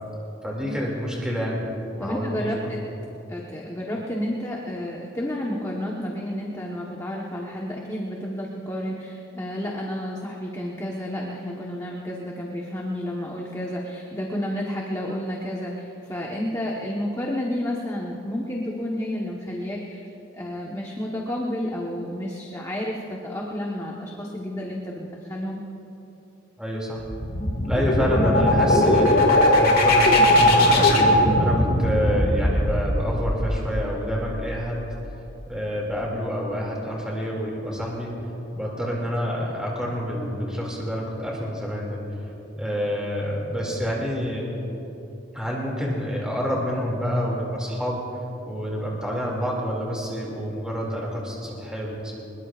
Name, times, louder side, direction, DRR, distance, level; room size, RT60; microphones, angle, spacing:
voice 1, 0.4-1.6 1.9-2.7 26.6-27.0 27.6-31.0 31.3-34.9 35.5-38.1 38.5-42.0 42.5-44.5 45.3-48.0 48.4-52.2, equal, 5° right, -3 dB, 2.4 m, -28 dB
voice 2, 2.0-2.8 3.3-20.0 20.3-25.6, left 1 dB, 15° left, -3 dB, 1.1 m, -31 dB
sound 1, 27.0-34.6, left 1 dB, 45° left, 2.0 m, -19 dB
23.0 x 21.0 x 2.5 m, 2.9 s
head